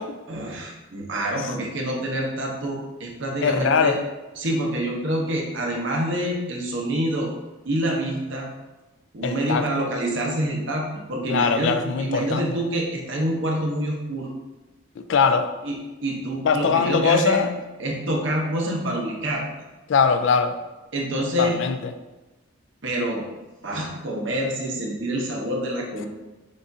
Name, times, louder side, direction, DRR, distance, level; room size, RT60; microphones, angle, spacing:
voice 1, 0.3-4.0 4.4-7.3 7.6-8.5 9.1-14.3 15.6-17.4 17.8-19.4 20.9-21.6 22.8-23.2 23.6-26.1, right 1 dB, 60° right, -1 dB, 0.9 m, -27 dB
voice 2, 3.4-4.0 9.2-9.7 11.3-12.6 15.1-15.5 16.4-17.5 19.9-20.6 21.4-21.8, left 5 dB, 60° left, 8 dB, 0.3 m, -21 dB
6.5 x 2.5 x 2.7 m, 1.1 s
head